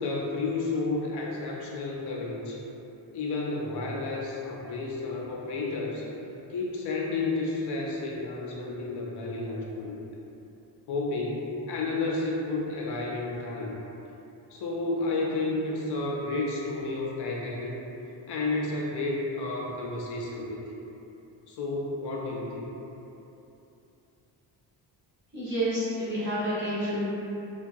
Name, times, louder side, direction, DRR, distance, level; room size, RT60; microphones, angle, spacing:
voice 1, 0.0-2.6 3.1-6.1 6.5-10.0 10.9-13.7 14.5-17.8 18.3-20.8 21.5-22.7, left 3 dB, 65° left, -3 dB, 0.5 m, -31 dB
voice 2, 25.3-27.0, right 1 dB, 25° right, -12 dB, 1.4 m, -29 dB
2.8 x 2.2 x 2.6 m, 3.0 s
cardioid pair, 115°, 42 cm